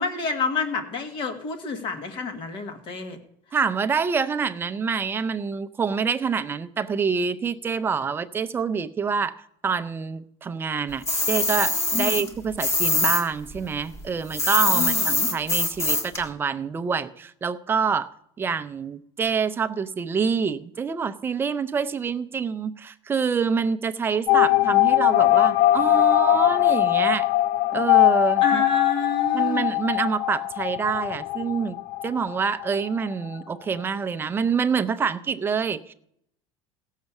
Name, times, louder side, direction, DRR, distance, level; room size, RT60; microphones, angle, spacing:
voice 1, 0.0-3.2 11.9-12.3 14.7-15.3 28.4-29.7, left 4 dB, 40° left, 6 dB, 1.7 m, -29 dB
voice 2, 3.5-9.3 9.6-18.1 18.4-27.3 27.7-28.6 29.3-31.8 32.0-35.9, right 6 dB, 15° right, 11 dB, 0.5 m, -26 dB
sound 1, 11.0-13.2 13.5-16.2, left 2 dB, 20° left, 1.6 m, -23 dB
sound 2, 24.3-32.8 33.1-33.2 33.3-33.4, left 15 dB, 55° left, 0.4 m, -21 dB
16.0 x 6.5 x 7.1 m, 0.72 s
cardioid pair, 165°, 14 cm